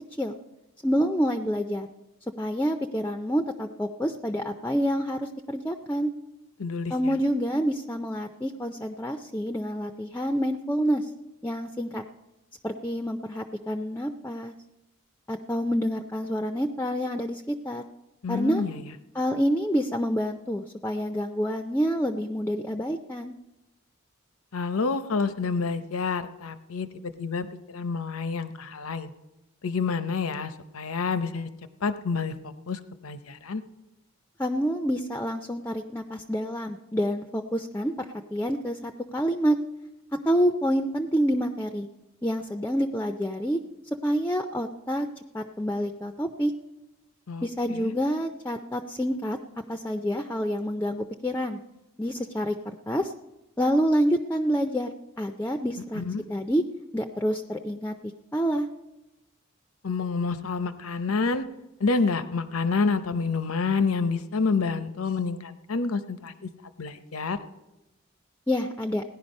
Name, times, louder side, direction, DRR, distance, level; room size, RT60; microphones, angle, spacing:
voice 1, 0.8-1.9 2.4-6.1 6.9-11.1 11.4-12.0 12.6-14.5 15.3-17.8 18.3-18.6 19.1-23.4 34.4-39.6 40.1-41.9 42.2-43.6 44.0-45.1 45.3-46.5 47.4-49.4 49.7-51.6 52.0-53.1 53.6-56.0 56.3-56.6 56.9-57.9 58.3-58.7 68.5-69.0, equal, 10° left, 5 dB, 0.4 m, -27 dB
voice 2, 6.6-7.1 18.2-18.9 24.5-29.1 29.6-31.5 31.8-33.6 47.3-47.9 55.9-56.3 59.8-61.5 61.8-66.5 66.8-67.4, left 4 dB, 80° left, 11 dB, 0.8 m, -28 dB
17.0 x 10.5 x 5.3 m, 0.99 s
head